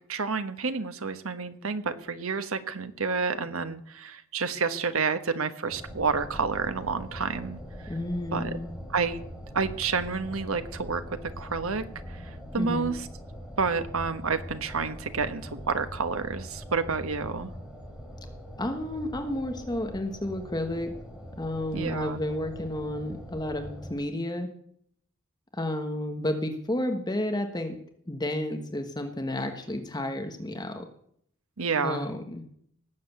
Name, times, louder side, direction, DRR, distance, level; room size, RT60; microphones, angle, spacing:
voice 1, 0.1-7.6 8.3-8.5 8.9-9.2 9.5-11.8 12.5-13.1 13.6-17.5 21.7-22.2 31.6-32.1, right 4 dB, 80° right, 10 dB, 1.3 m, -29 dB
sound 1, 5.7-23.9, equal, 5° right, 4.1 m, -42 dB
voice 2, 7.9-8.7 12.6-12.9 18.6-20.9 21.4-24.5 25.5-27.7 28.1-30.8 31.8-32.4, left 1 dB, 20° left, 5 dB, 1.3 m, -31 dB
18.5 x 7.7 x 8.2 m, 0.68 s
head